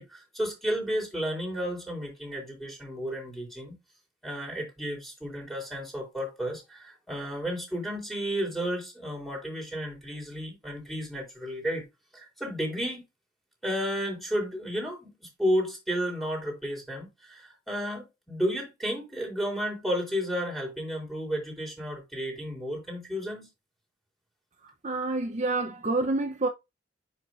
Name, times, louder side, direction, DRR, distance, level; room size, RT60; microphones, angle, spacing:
voice 1, 0.0-3.8 4.2-11.8 12.1-13.0 13.6-23.5, equal, ahead, 3.6 m, -32 dB
voice 2, 24.8-26.5, right 2 dB, 40° right, 0.7 m, -28 dB
9.0 x 5.5 x 2.5 m
head